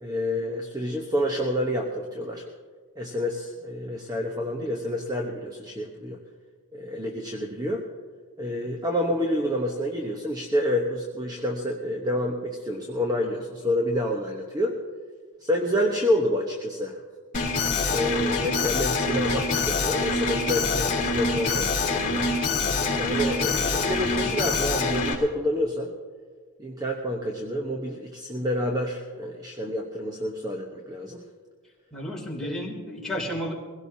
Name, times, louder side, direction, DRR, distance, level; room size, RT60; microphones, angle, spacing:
voice 1, 0.0-2.4 3.0-6.2 6.7-7.8 8.4-14.7 15.4-17.0 17.9-22.3 23.0-25.9 26.6-31.2 32.4-32.5, equal, 15° right, 1 dB, 1.0 m, -28 dB
Alarm, 17.3-25.1, left 3 dB, 35° left, 3.2 m, -25 dB
voice 2, 31.9-33.5, equal, ahead, -4 dB, 3.0 m, -32 dB
22.5 x 17.0 x 2.8 m, 1.5 s
head